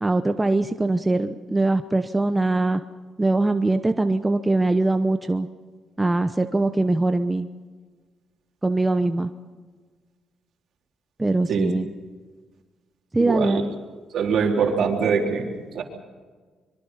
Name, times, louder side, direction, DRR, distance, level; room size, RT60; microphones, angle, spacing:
voice 1, 0.0-2.8 3.2-5.5 6.0-7.5 8.6-9.3 11.2-11.9 13.1-13.7, right 2 dB, 15° right, 8 dB, 0.9 m, -22 dB
voice 2, 13.2-13.6 14.1-15.8, right 6 dB, 65° right, 1 dB, 4.0 m, -23 dB
25.0 x 23.5 x 5.8 m, 1.4 s
cardioid pair, 90°, 0 cm